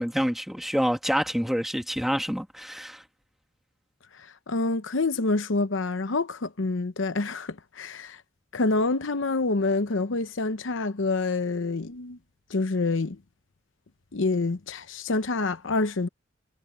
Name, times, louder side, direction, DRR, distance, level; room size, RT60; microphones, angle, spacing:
voice 1, 0.0-3.0, equal, ahead, 1.8 m, -27 dB
voice 2, 4.1-8.2 8.5-12.2 12.5-13.2 14.1-16.1, left 3 dB, 80° left, 0.8 m, -27 dB
head